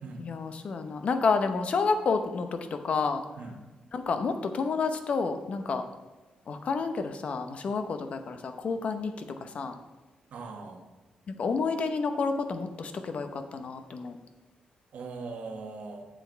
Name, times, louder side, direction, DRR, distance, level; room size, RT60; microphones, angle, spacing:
voice 1, 0.2-2.6 2.8-3.2 3.9-5.8 6.5-9.8 11.3-14.2, left 4 dB, 55° left, 8 dB, 0.8 m, -30 dB
voice 2, 10.3-10.8 14.9-16.1, right 4 dB, 75° right, 3 dB, 1.4 m, -40 dB
7.5 x 7.2 x 4.6 m, 1.2 s
cardioid pair, 110°, 3 cm